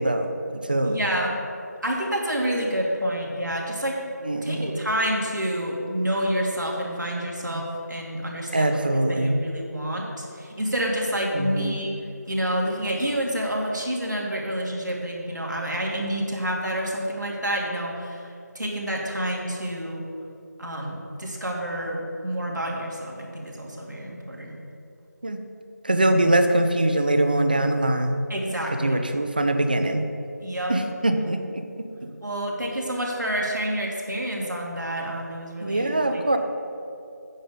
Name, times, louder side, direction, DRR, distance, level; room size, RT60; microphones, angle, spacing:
voice 1, 0.0-1.0 4.2-4.8 7.5-7.6 8.5-9.4 11.3-11.7 25.2-25.4 25.8-28.2 28.8-30.1 30.7-31.6 32.0-32.1 35.6-36.4, right 1 dB, 30° right, 7 dB, 0.5 m, -23 dB
voice 2, 0.8-1.4 1.8-4.0 4.4-11.9 12.3-20.0 20.6-24.6 28.3-29.0 30.4-30.7 32.2-36.4, equal, 90° right, -2 dB, 2.3 m, -28 dB
9.1 x 5.2 x 6.7 m, 2.7 s
figure-of-eight pair, 170°, 10 cm